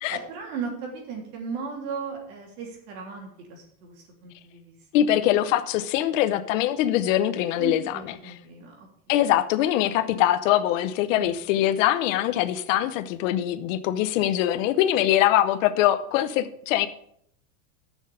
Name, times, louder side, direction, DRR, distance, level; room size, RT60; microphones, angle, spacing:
voice 1, 0.1-3.9 4.2-4.7 7.6-8.9 11.2-11.3, right 5 dB, 65° right, 0 dB, 3.2 m, -36 dB
voice 2, 4.9-8.3 9.1-16.9, left 12 dB, 50° left, 12 dB, 0.9 m, -23 dB
10.5 x 6.4 x 6.7 m, 0.70 s
supercardioid pair, 170°, 49 cm